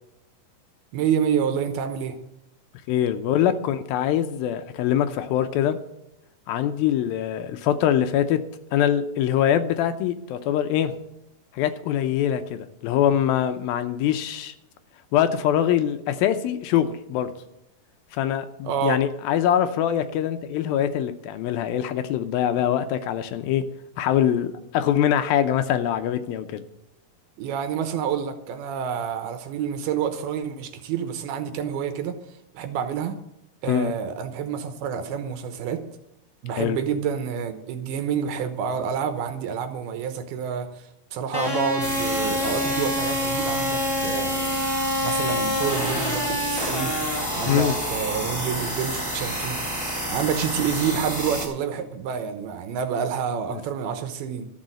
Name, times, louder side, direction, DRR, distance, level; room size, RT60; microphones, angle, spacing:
voice 1, 0.9-2.2 18.6-19.0 27.4-32.2 32.5-33.2 33.6-35.8 36.4-40.7 41.1-44.6 45.0-47.0 47.3-49.6 50.1-54.5, right 7 dB, 85° right, 8 dB, 3.0 m, -28 dB
voice 2, 2.9-5.8 6.5-8.4 8.7-11.0 11.5-14.5 15.1-17.3 18.1-23.6 24.0-26.7 33.7-33.9 36.6-36.8 47.5-47.8 53.5-53.6, left 10 dB, 80° left, 9 dB, 2.5 m, -23 dB
sound 1, 41.3-51.4, left 1 dB, 20° left, 0.6 m, -28 dB
sound 2, 41.8-51.5, right 1 dB, 5° right, 4.1 m, -31 dB
13.5 x 6.3 x 7.7 m, 0.86 s
omnidirectional pair, 4.4 m